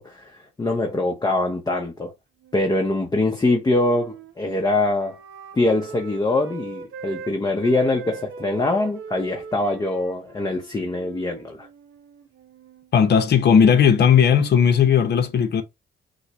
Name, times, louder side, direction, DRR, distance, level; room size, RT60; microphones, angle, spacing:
voice 1, 0.0-2.1 2.5-5.2 5.5-11.7, left 2 dB, 20° left, 0.7 m, -23 dB
Wind instrument woodwind instrument, 2.4-7.3 7.6-12.9, right 5 dB, 85° right, 0.9 m, -41 dB
voice 2, 12.9-15.6, left 7 dB, 55° left, 0.8 m, -16 dB
6.3 x 2.1 x 3.0 m
cardioid pair, 90°, 20 cm